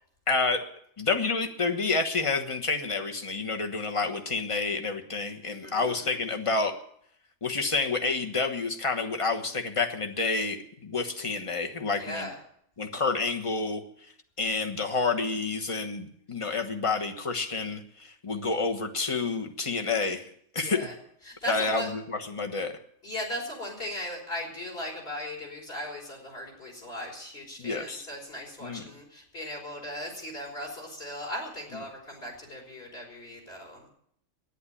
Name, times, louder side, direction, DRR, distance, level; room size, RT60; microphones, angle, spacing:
voice 1, 0.3-0.6 1.0-6.7 7.4-12.3 12.8-13.8 14.4-20.3 20.5-20.8 21.5-22.7 27.6-28.1 28.6-28.9, left 4 dB, 25° left, 5 dB, 1.2 m, -29 dB
voice 2, 5.6-6.2 12.0-12.3 20.6-20.9 21.3-21.9 23.0-33.9, left 1 dB, 45° left, -1 dB, 5.1 m, -38 dB
11.5 x 10.0 x 9.9 m, 0.68 s
omnidirectional pair, 1.4 m